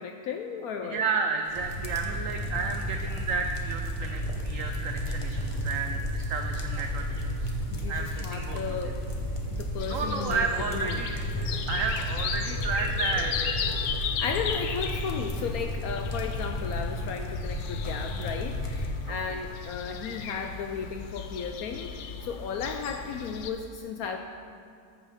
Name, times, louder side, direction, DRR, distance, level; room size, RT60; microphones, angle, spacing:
voice 1, 0.0-1.0 7.7-9.0 9.5-11.0 14.0-21.9 22.2-24.2, left 6 dB, 75° left, 4 dB, 0.8 m, -35 dB
voice 2, 0.8-7.5 7.9-8.6 8.8-8.9 9.9-13.6 19.1-19.4, right 4 dB, 85° right, 4 dB, 0.7 m, -32 dB
sound 1, 1.4-11.0, right 1 dB, 60° right, 2.1 m, -46 dB
sound 2, 1.5-18.9, equal, 40° left, 0.4 m, -33 dB
sound 3, 9.8-23.5, left 7 dB, 90° left, 1.3 m, -36 dB
13.5 x 7.2 x 3.5 m, 2.2 s
omnidirectional pair, 1.9 m